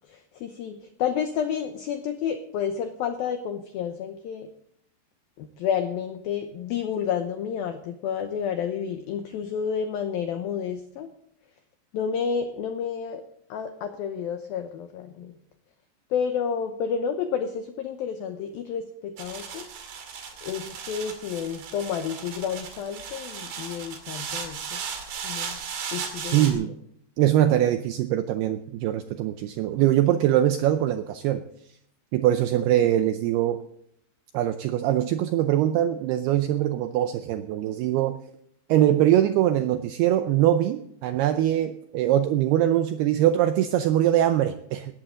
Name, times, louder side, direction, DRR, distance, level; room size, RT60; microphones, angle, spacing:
voice 1, 0.1-4.5 5.4-11.1 11.9-13.2 13.5-15.4 16.1-19.7 20.4-24.8 25.2-25.6 25.9-26.7, left 7 dB, 80° left, 7 dB, 2.1 m, -30 dB
sound 1, 19.2-26.5, right 6 dB, 65° right, 4.2 m, -36 dB
voice 2, 26.3-26.7 27.2-31.4 32.1-33.6 34.3-38.2 38.7-45.0, right 12 dB, 90° right, 9 dB, 2.2 m, -22 dB
18.0 x 13.5 x 3.8 m, 0.72 s
omnidirectional pair, 5.4 m